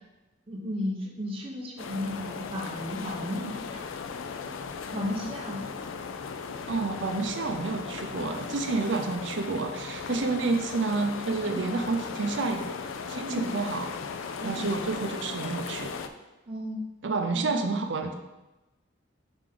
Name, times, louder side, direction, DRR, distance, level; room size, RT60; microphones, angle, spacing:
voice 1, 0.5-3.8 4.9-5.6 11.4-11.7 13.3-13.5 14.4-14.5 16.5-16.8 17.3-17.6, left 1 dB, 30° right, -2 dB, 1.0 m, -34 dB
sound 1, 1.8-16.1, left 5 dB, 90° left, 0.4 m, -37 dB
voice 2, 6.7-12.8 13.1-13.9 14.4-15.9 17.0-18.2, right 3 dB, 65° right, 5 dB, 0.6 m, -29 dB
4.9 x 4.9 x 3.9 m, 1.1 s
head